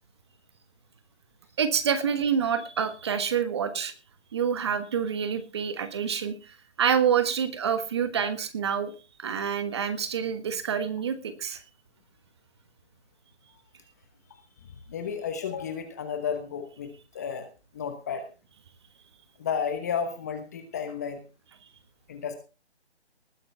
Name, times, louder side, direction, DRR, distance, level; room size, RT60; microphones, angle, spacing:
voice 1, 1.6-3.9 4.3-8.9 9.2-11.6, right 7 dB, 25° right, 10 dB, 1.4 m, -27 dB
voice 2, 14.9-17.5 17.7-18.3 19.4-21.2 22.1-22.3, left 7 dB, 15° left, 7 dB, 1.1 m, -32 dB
19.5 x 9.7 x 3.5 m, 0.31 s
figure-of-eight pair, 165°, 34 cm